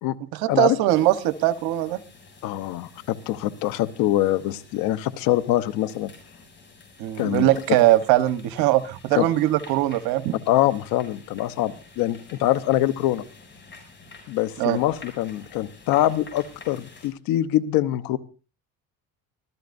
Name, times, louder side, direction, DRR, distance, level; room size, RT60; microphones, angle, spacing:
voice 1, 0.3-2.0 7.0-10.3 14.6-14.8, right 15 dB, 80° right, 11 dB, 1.3 m, -21 dB
sound 1, 0.9-17.1, left 3 dB, 30° left, 7.2 m, -49 dB
voice 2, 2.4-6.1 7.2-7.5 9.2-9.3 10.5-13.2 14.3-18.2, left 14 dB, 75° left, 14 dB, 1.1 m, -24 dB
24.0 x 15.5 x 2.7 m, 0.34 s
cardioid pair, 115°, 35 cm